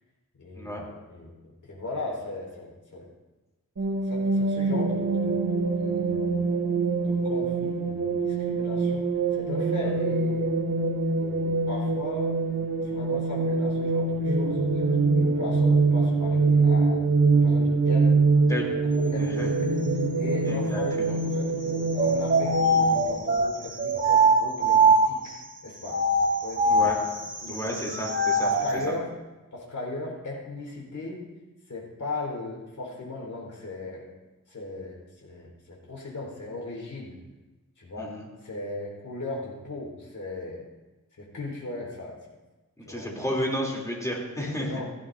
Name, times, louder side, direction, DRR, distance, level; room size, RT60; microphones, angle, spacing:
voice 1, 0.4-1.3 1.6-3.1 4.0-5.4 5.8-6.3 7.0-9.0 9.3-10.5 11.2-12.4 12.8-17.0 17.3-18.2 18.6-25.4 25.6-26.0 26.4-26.9 27.4-27.7 28.4-29.1 29.5-31.3 31.7-34.1 34.5-37.2 37.8-38.2 38.4-40.6 41.2-42.2 42.8-43.1 44.4-44.8, left 2 dB, 70° left, -2 dB, 4.4 m, -37 dB
sound 1, 3.8-23.0, right 3 dB, 65° right, 2.4 m, -24 dB
voice 2, 19.2-19.5 20.4-21.2 26.7-27.0 27.5-28.5 38.0-38.2 42.8-44.7, equal, 10° left, -2 dB, 3.3 m, -32 dB
sound 2, 21.9-25.3 25.8-28.8, right 2 dB, 40° right, 1.8 m, -22 dB
17.5 x 15.0 x 2.7 m, 1.1 s
wide cardioid pair, 130°, 31 cm